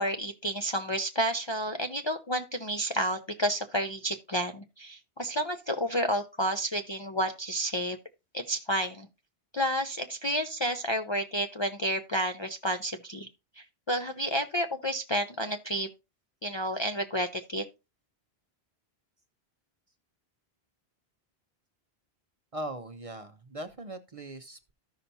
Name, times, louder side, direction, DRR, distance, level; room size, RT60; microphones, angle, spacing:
voice 1, 0.0-8.0 8.3-9.1 9.5-13.3 13.9-15.9 16.4-17.6, equal, 35° left, 5 dB, 0.5 m, -30 dB
voice 2, 22.5-24.7, right 1 dB, 40° right, 8 dB, 0.6 m, -40 dB
14.0 x 5.7 x 2.7 m, 0.27 s
omnidirectional pair, 1.1 m